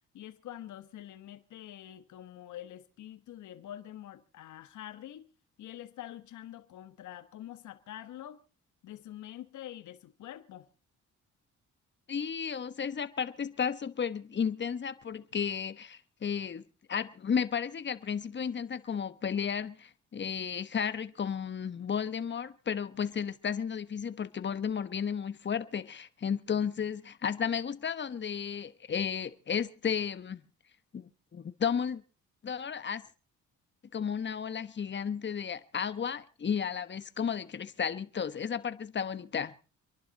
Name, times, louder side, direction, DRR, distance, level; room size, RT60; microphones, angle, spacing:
voice 1, 0.1-5.3 5.6-8.4 8.8-10.7, left 12 dB, 75° left, 1.3 m, -46 dB
voice 2, 12.1-16.6 16.9-30.4 30.9-32.0 32.4-33.0 33.9-39.5, left 7 dB, 35° left, 1.2 m, -33 dB
26.5 x 11.5 x 4.1 m
cardioid pair, 90°, 30 cm